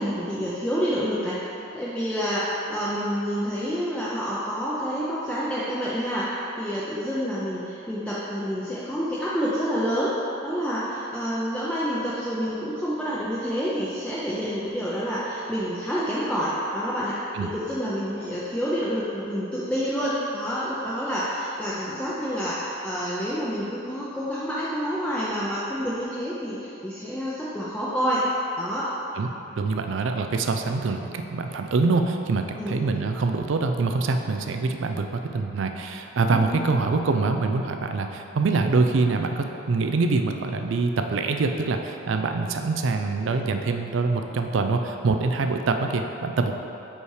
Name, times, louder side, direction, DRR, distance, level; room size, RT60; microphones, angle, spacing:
voice 1, 0.0-1.4 1.7-10.1 10.4-17.2 17.5-28.3 28.6-28.9 32.6-32.8 36.3-36.8, equal, 5° left, -9 dB, 0.5 m, -28 dB
voice 2, 29.6-46.5, right 3 dB, 65° right, 5 dB, 0.4 m, -25 dB
5.4 x 4.9 x 4.8 m, 3.0 s
head